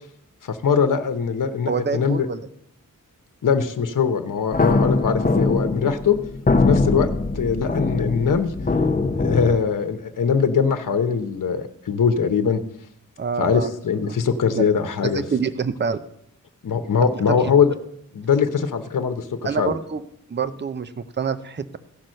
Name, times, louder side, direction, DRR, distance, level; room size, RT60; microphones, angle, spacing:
voice 1, 0.4-2.3 3.4-6.2 6.6-7.1 7.3-8.5 9.2-12.6 13.4-15.2 16.6-17.7 18.1-19.7, left 6 dB, 65° left, 8 dB, 1.0 m, -21 dB
voice 2, 1.7-2.5 13.2-13.7 14.1-14.2 14.5-14.7 15.0-16.0 17.0-17.5 19.4-20.0 20.3-21.8, right 5 dB, 30° right, 11 dB, 0.6 m, -26 dB
sound 1, 4.5-9.6, left 3 dB, 25° left, 0.8 m, -22 dB
15.5 x 6.0 x 6.5 m, 0.74 s
wide cardioid pair, 140°, 34 cm